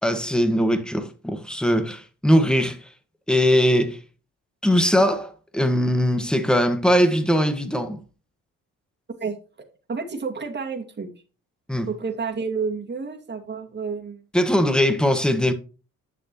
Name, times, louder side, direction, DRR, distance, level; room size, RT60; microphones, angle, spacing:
voice 1, 0.0-2.9 3.3-4.0 4.6-8.0 11.7-11.9 14.3-15.5, equal, 5° left, 1.6 m, -20 dB
voice 2, 9.9-11.1 11.9-14.2, right 5 dB, 35° right, 2.2 m, -30 dB
10.0 x 6.5 x 3.1 m
cardioid pair, 90°, 30 cm